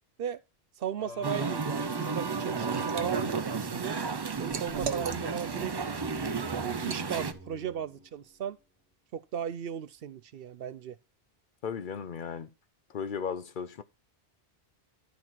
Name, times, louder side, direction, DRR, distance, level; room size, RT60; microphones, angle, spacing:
voice 1, 0.8-4.0 4.4-5.7 6.6-8.6 9.1-10.9, right 8 dB, 65° right, 0.8 m, -36 dB
Singing, 1.0-8.3, left 2 dB, 90° left, 2.5 m, -46 dB
Musical instrument, 1.2-7.3, right 5 dB, 35° right, 0.4 m, -33 dB
Liquid, 2.2-3.1 3.5-5.6 6.0-6.2 6.8-7.1, right 6 dB, 90° right, 1.2 m, -39 dB
voice 2, 11.6-12.5 12.9-13.8, left 6 dB, 55° left, 0.8 m, -35 dB
11.5 x 4.6 x 5.7 m
omnidirectional pair, 1.1 m